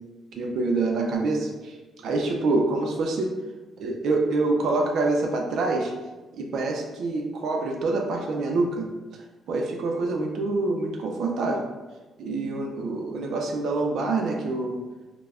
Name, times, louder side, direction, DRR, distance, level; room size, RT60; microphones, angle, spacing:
voice 1, 0.3-1.8 2.0-3.3 3.8-5.9 6.3-8.9 9.5-11.6 12.2-14.8, right 3 dB, 70° right, 1 dB, 0.5 m, -26 dB
2.2 x 2.0 x 3.4 m, 1.2 s
cardioid pair, 90°, 0 cm